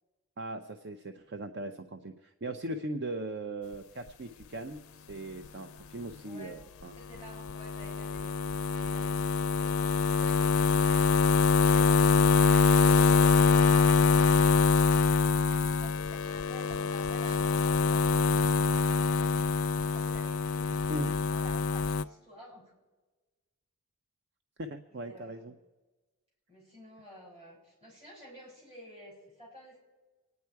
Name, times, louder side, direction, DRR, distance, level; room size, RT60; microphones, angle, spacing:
voice 1, 0.4-6.9 20.9-21.1 24.6-25.5, right 1 dB, 50° right, 8 dB, 0.6 m, -39 dB
voice 2, 6.2-6.6 6.9-8.4 8.7-18.2 18.6-20.9 21.3-22.7 24.9-25.5 26.5-29.8, equal, 25° right, -4 dB, 6.2 m, -51 dB
sound 1, 7.2-22.0, left 4 dB, 65° left, 0.4 m, -25 dB
25.5 x 9.5 x 4.7 m, 1.2 s
head